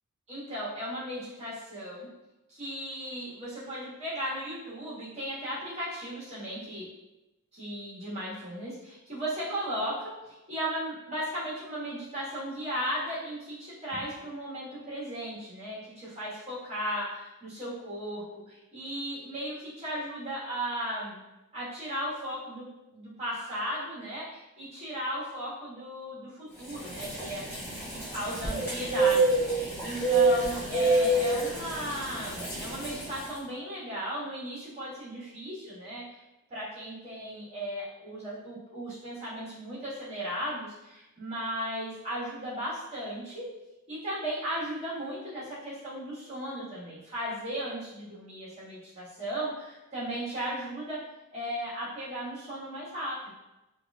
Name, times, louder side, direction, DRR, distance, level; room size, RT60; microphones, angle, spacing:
voice 1, 0.3-2.1 2.5-6.9 7.5-21.2 21.5-27.4 27.8-36.2 36.5-43.4 43.9-51.0 51.3-53.3, equal, 30° right, -8 dB, 1.5 m, -36 dB
sound 1, 26.6-33.3, right 2 dB, 10° left, 1.2 m, -28 dB
4.7 x 2.6 x 2.3 m, 0.98 s
head